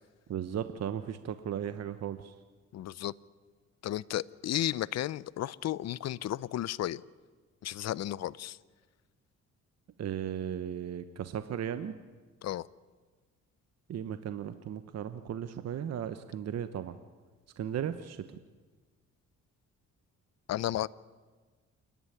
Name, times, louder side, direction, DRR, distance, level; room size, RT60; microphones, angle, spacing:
voice 1, 0.3-2.3 10.0-11.9 13.9-16.9 17.6-18.2, right 9 dB, 55° right, 1.0 m, -36 dB
voice 2, 2.7-3.1 3.8-7.0 7.6-8.6 12.4-12.7 20.5-20.9, left 13 dB, 60° left, 0.6 m, -33 dB
28.0 x 11.0 x 9.9 m
cardioid pair, 90°, 30 cm